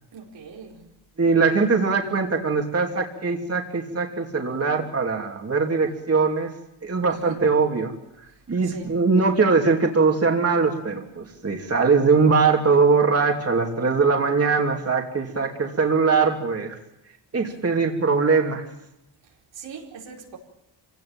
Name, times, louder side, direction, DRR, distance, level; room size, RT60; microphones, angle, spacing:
voice 1, 0.1-0.9 7.3-7.4 8.6-9.0 17.4-17.6 19.5-20.4, right 6 dB, 85° right, 4.6 m, -41 dB
voice 2, 1.2-6.5 6.8-7.9 8.5-16.8 17.3-18.7, right 4 dB, 35° right, 2.9 m, -21 dB
26.5 x 17.5 x 9.0 m
cardioid pair, 95°, 42 cm